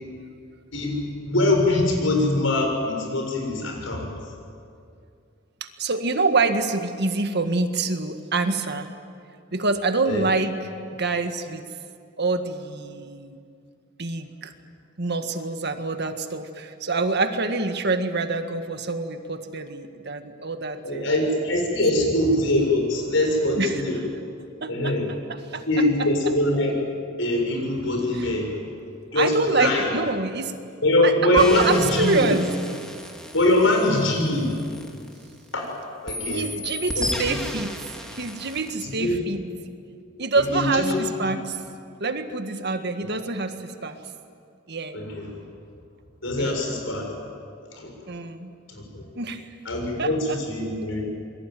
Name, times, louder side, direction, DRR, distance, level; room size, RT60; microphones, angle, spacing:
voice 1, 0.7-4.1 10.1-10.3 20.8-24.0 24.7-25.1 25.7-26.8 27.2-28.5 29.1-29.9 30.8-32.3 33.3-34.5 35.5-35.7 36.0-36.5 37.0-37.4 38.8-39.2 40.5-41.0 44.9-45.3 46.2-47.1 47.8-47.9 48.7-49.0 49.7-51.0, left 1 dB, 75° left, 1 dB, 7.4 m, -23 dB
voice 2, 5.6-8.9 9.5-11.7 12.2-13.4 14.0-14.5 15.0-21.1 23.6-24.1 24.6-26.1 28.2-28.3 29.2-30.5 31.0-32.5 33.8-34.1 36.3-37.7 38.1-39.4 40.2-41.6 42.0-44.0 44.7-45.0 46.4-46.6 48.1-48.5 49.2-49.4 50.0-50.4, right 3 dB, 55° right, 7 dB, 1.8 m, -26 dB
sound 1, 31.4-35.6 36.1-38.8, left 1 dB, 5° left, 2.8 m, -34 dB
27.5 x 23.0 x 9.3 m, 2.4 s
head